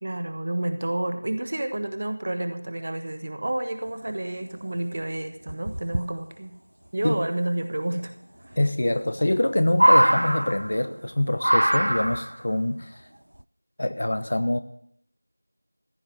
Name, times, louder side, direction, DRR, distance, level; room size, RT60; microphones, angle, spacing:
voice 1, 0.0-6.5 6.9-8.1 8.5-8.6, right 1 dB, 30° right, 8 dB, 1.2 m, -30 dB
sound 1, 4.4-4.5 4.8-4.9 5.5-6.0 7.6-7.7 8.9-9.4 9.7-10.9 11.4-12.4 13.4-13.5, right 1 dB, 70° right, 0.4 m, -22 dB
voice 2, 8.6-12.9 13.8-14.6, left 1 dB, 35° left, 10 dB, 0.8 m, -25 dB
15.0 x 6.9 x 8.5 m, 0.68 s
figure-of-eight pair, 175°, 0 cm